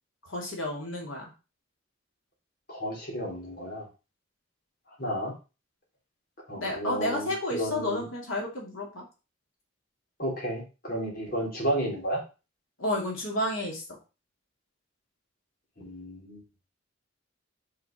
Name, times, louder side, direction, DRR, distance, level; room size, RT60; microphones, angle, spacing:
voice 1, 0.3-1.2 6.6-9.0 12.8-13.8, left 1 dB, 90° left, -1 dB, 2.7 m, -31 dB
voice 2, 2.7-3.9 5.0-5.3 6.5-8.1 10.2-12.2 15.8-16.4, right 1 dB, 45° left, -1 dB, 3.1 m, -32 dB
5.7 x 5.1 x 5.1 m, 0.30 s
head